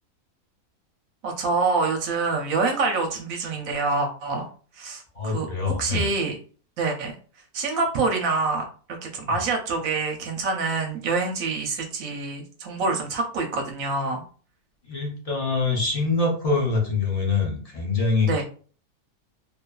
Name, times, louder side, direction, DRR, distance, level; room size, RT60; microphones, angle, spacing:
voice 1, 1.2-4.5 4.7-6.3 6.8-7.1 7.5-14.2 18.3-18.4, right 3 dB, 70° right, 2 dB, 0.9 m, -26 dB
voice 2, 5.1-6.1 9.2-9.4 14.9-18.4, left 4 dB, 45° left, -2 dB, 0.4 m, -24 dB
2.6 x 2.4 x 2.2 m, 0.41 s
omnidirectional pair, 1.6 m